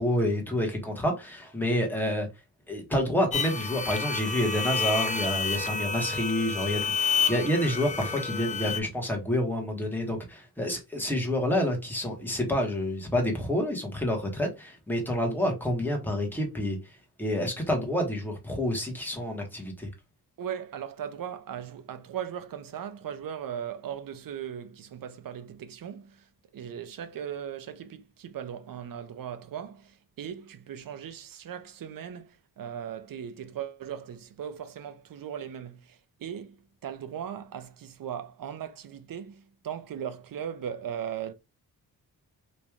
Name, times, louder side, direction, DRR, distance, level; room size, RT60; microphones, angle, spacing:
voice 1, 0.0-2.3 2.7-19.9, left 1 dB, 5° left, 1.2 m, -28 dB
sound 1, 3.3-8.8, left 5 dB, 20° left, 0.4 m, -29 dB
voice 2, 20.4-26.3 26.5-41.3, right 9 dB, 60° right, 0.6 m, -38 dB
3.2 x 2.6 x 3.4 m
wide cardioid pair, 120°, 38 cm